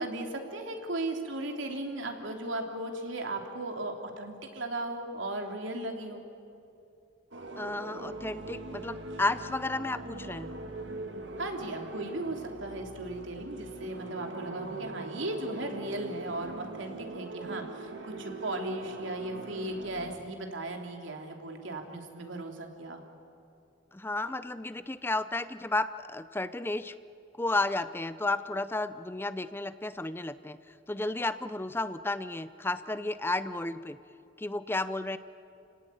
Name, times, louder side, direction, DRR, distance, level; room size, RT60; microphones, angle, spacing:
voice 1, 0.0-6.2 11.4-23.0, right 1 dB, 90° right, 3 dB, 3.2 m, -36 dB
sound 1, 7.3-20.2, right 3 dB, 75° right, 2.1 m, -41 dB
voice 2, 7.6-10.5 23.9-26.9 27.4-30.6 30.9-34.0 34.4-35.2, left 2 dB, 10° left, 13 dB, 0.6 m, -32 dB
29.5 x 18.0 x 9.3 m, 2.6 s
head